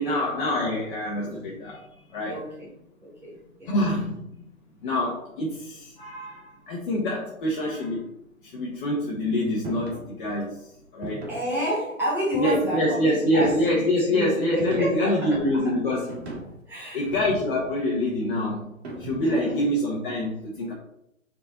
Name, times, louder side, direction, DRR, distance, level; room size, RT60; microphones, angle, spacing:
voice 1, 0.0-2.4 3.7-4.4 4.8-8.1 8.4-11.2 12.3-16.2 16.9-18.7 19.0-20.7, left 1 dB, 40° left, -3 dB, 1.6 m, -26 dB
voice 2, 2.3-2.7 3.0-3.7 11.3-15.6 16.7-17.1 19.2-19.7, equal, 5° right, -6 dB, 1.5 m, -30 dB
sound 1, 9.6-10.1 11.0-11.5 12.3-12.9 13.4-13.8 14.6-15.2 16.1-16.6 17.1-17.8 18.8-19.4, right 2 dB, 50° right, 2.2 m, -38 dB
6.5 x 4.4 x 4.0 m, 0.79 s
hypercardioid pair, 150°, 41 cm